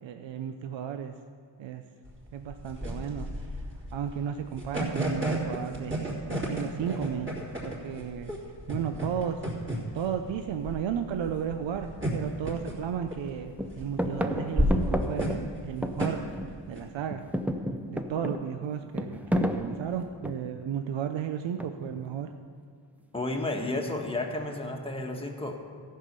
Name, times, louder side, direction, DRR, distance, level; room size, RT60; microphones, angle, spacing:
voice 1, 0.0-1.1 1.6-1.8 2.3-3.4 3.9-7.3 7.6-8.3 8.7-9.4 9.9-16.2 16.7-17.2 17.9-22.3, right 8 dB, 75° right, 7 dB, 0.6 m, -34 dB
sound 1, 2.0-16.8, equal, 25° right, 2.9 m, -33 dB
sound 2, 12.1-12.3 12.7-13.3 13.6-16.7 17.0-20.6 21.6-22.1, equal, 5° right, 0.5 m, -32 dB
voice 2, 23.1-25.6, left 2 dB, 10° left, 1 dB, 1.3 m, -32 dB
14.5 x 5.6 x 6.7 m, 2.3 s
wide cardioid pair, 105°, 45 cm